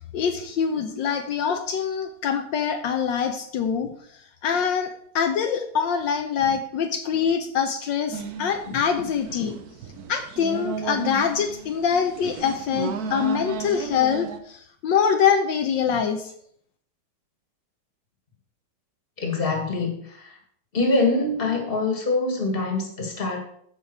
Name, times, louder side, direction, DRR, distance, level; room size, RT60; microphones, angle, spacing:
voice 1, 0.1-9.6 10.1-16.3, left 7 dB, 75° left, 5 dB, 1.4 m, -24 dB
sound 1, 8.1-14.4, right 5 dB, 60° right, 1.2 m, -34 dB
voice 2, 19.2-20.4 20.7-23.4, left 3 dB, 30° left, 3 dB, 1.9 m, -24 dB
14.0 x 5.4 x 4.5 m, 0.65 s
omnidirectional pair, 2.1 m